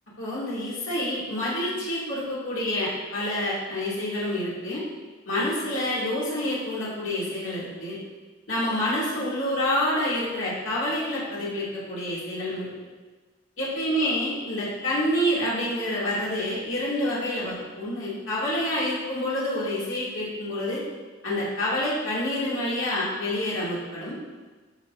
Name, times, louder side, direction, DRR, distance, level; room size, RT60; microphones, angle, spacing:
voice 1, 0.2-4.8 5.3-8.0 8.5-12.7 13.6-20.8 21.2-24.2, left 1 dB, 65° left, -8 dB, 2.6 m, -28 dB
12.0 x 6.3 x 2.7 m, 1.3 s
head